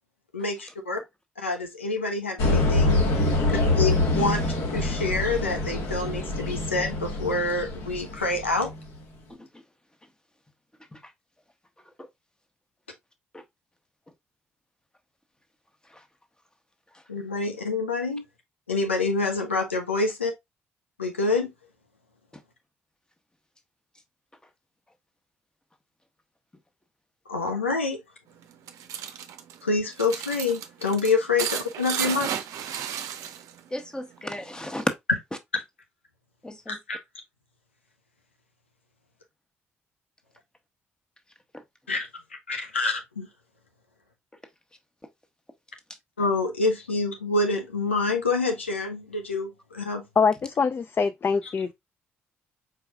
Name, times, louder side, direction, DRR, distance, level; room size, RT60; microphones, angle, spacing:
voice 1, 0.3-1.0 1.4-3.4 3.7-4.5 4.7-8.7 17.1-18.2 18.7-20.3 21.0-21.5 27.3-28.0 29.6-32.3 36.7-37.0 41.9-42.1 42.5-43.3 46.2-50.0, left 3 dB, 90° left, 0.6 m, -27 dB
sound 1, 2.4-8.8, left 2 dB, 60° left, 1.5 m, -25 dB
voice 2, 9.3-9.6 10.9-11.1 11.8-12.1 13.3-13.4 15.8-16.0 16.9-17.0 22.3-22.4 33.7-34.9 36.4-36.8, left 1 dB, 15° left, 1.1 m, -34 dB
sound 2, 28.4-33.7 33.9-34.9, right 9 dB, 60° right, 0.6 m, -34 dB
voice 3, 50.2-51.7, left 5 dB, 35° left, 0.4 m, -24 dB
4.6 x 4.5 x 2.3 m
figure-of-eight pair, 45°, 6 cm